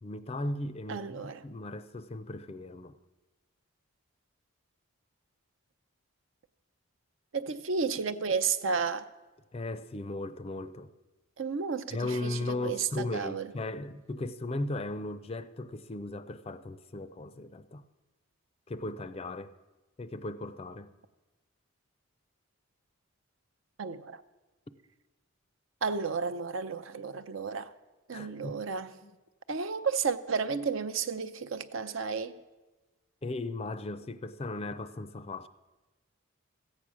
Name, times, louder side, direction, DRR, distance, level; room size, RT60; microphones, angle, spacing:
voice 1, 0.0-3.0 9.5-10.9 11.9-17.8 18.7-19.5 20.0-20.9 28.1-28.6 29.0-29.1 33.2-35.5, left 2 dB, 30° left, 0.4 m, -37 dB
voice 2, 0.9-1.4 7.3-9.0 11.4-13.5 23.8-24.2 25.8-27.7 28.1-28.9 29.5-32.4, right 5 dB, 65° right, 0.6 m, -32 dB
14.0 x 8.5 x 6.2 m
head